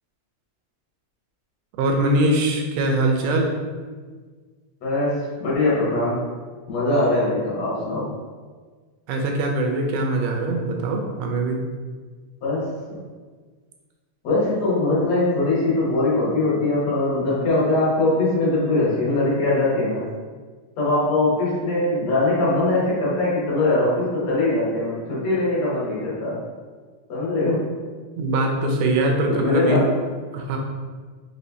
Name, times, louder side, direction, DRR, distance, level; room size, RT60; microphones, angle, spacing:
voice 1, 1.8-3.5 9.1-11.6 28.2-29.8 30.3-30.6, right 1 dB, 85° right, 2 dB, 2.1 m, -22 dB
voice 2, 4.8-6.3 6.7-8.1 12.4-13.0 14.2-20.1 20.8-26.4 27.1-27.7 29.2-29.9, left 2 dB, 65° left, -7 dB, 1.9 m, -22 dB
4.9 x 3.1 x 2.7 m, 1.5 s
omnidirectional pair, 3.6 m